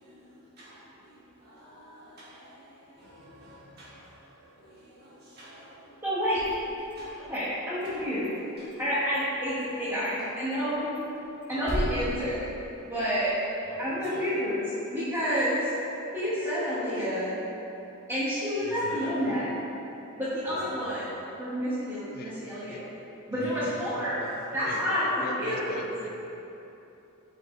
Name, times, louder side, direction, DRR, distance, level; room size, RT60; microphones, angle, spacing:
voice 1, 0.0-7.3 7.8-8.8 9.4-9.9 11.5-11.6 13.6-14.4 18.6-19.5 20.4-21.2 23.4-25.0, equal, 50° right, -10 dB, 1.5 m, -47 dB
voice 2, 6.0-6.4 7.3-8.3 8.8-10.9 11.5-12.4 12.8-13.3 13.8-14.6 14.9-15.7 16.1-17.4 18.1-19.4 20.2-21.0 21.4-22.8 23.3-24.3 24.5-25.8, equal, 15° right, -15 dB, 1.0 m, -29 dB
sound 1, 6.2-7.4 7.7-8.9 9.1-9.2 9.6-9.8 10.0-10.1 10.5-13.1, equal, 90° right, 1.0 m, -37 dB
voice 3, 24.6-26.1, left 2 dB, 45° left, 2 dB, 0.4 m, -39 dB
5.0 x 4.1 x 2.4 m, 3.0 s
head